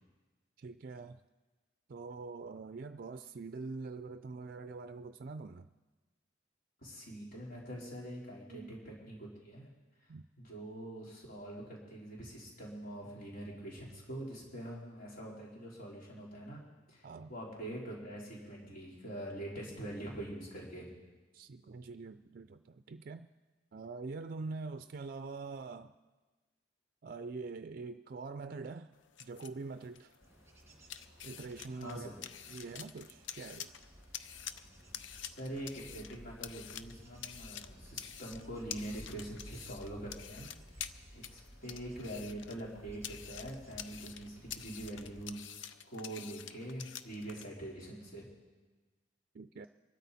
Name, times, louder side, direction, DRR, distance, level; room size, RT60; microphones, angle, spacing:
voice 1, 0.6-1.2 1.9-5.7 8.5-8.7 10.1-10.2 17.0-17.3 21.3-23.3 23.7-25.9 27.0-28.9 29.2-30.1 31.2-32.1 32.5-33.7 49.3-49.7, right 4 dB, 50° right, 10 dB, 0.4 m, -44 dB
voice 2, 6.8-9.7 10.4-16.6 16.9-20.9 31.7-32.2 35.2-48.3, right 1 dB, 50° left, -4 dB, 4.0 m, -44 dB
sound 1, 28.9-47.5, left 9 dB, 85° left, 0.7 m, -48 dB
Bird / Insect / Wind, 30.2-45.2, equal, 15° right, 1.8 m, -56 dB
24.0 x 13.5 x 4.2 m, 1.2 s
head